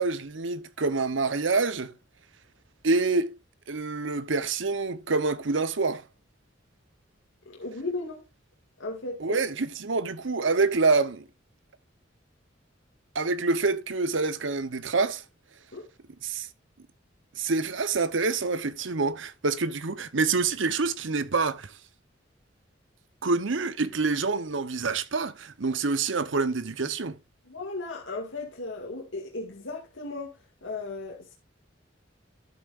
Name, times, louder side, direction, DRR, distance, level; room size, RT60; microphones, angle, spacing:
voice 1, 0.0-1.9 2.8-3.3 3.7-6.0 9.2-11.2 13.1-15.2 16.2-16.5 17.4-21.7 23.2-27.2, right 3 dB, 80° right, 0.9 m, -26 dB
voice 2, 7.5-8.2 8.8-9.4 15.7-15.9 27.5-30.4 30.6-31.3, left 3 dB, 85° left, 2.0 m, -36 dB
13.0 x 8.2 x 2.5 m
head